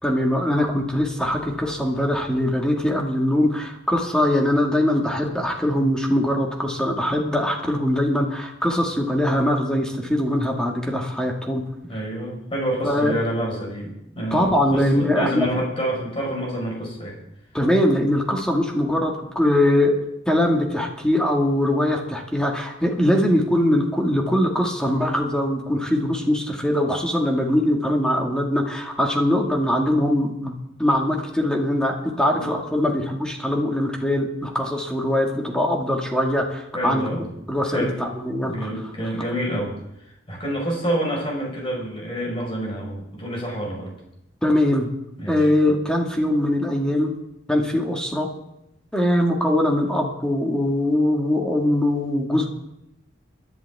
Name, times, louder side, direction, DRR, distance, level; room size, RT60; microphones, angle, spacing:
voice 1, 0.0-11.6 12.8-13.1 14.3-15.5 17.5-20.0 20.3-30.5 30.8-37.1 37.5-38.7 44.4-44.9 45.3-47.1 47.5-48.3 48.9-52.5, left 1 dB, 5° left, 0 dB, 1.9 m, -22 dB
voice 2, 11.8-17.2 32.4-32.5 36.7-37.3 37.7-37.9 38.4-39.8 40.3-43.9 45.2-45.5, equal, 30° left, -1 dB, 4.8 m, -28 dB
25.5 x 11.0 x 3.5 m, 0.83 s
head